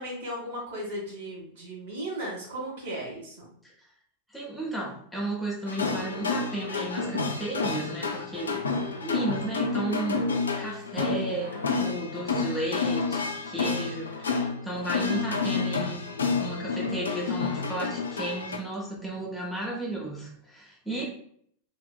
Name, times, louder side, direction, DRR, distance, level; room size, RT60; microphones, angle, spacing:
voice 1, 0.0-3.5 8.4-9.2 11.4-11.8 19.0-19.2 20.9-21.0, right 1 dB, 55° right, -3 dB, 1.3 m, -37 dB
voice 2, 4.3-8.6 9.0-10.2 10.6-11.5 11.8-16.1 16.4-21.0, right 1 dB, 5° left, -4 dB, 0.7 m, -34 dB
sound 1, 5.7-18.6, left 4 dB, 70° left, 0.3 m, -29 dB
2.9 x 2.5 x 2.2 m, 0.63 s
figure-of-eight pair, 90°, 0 cm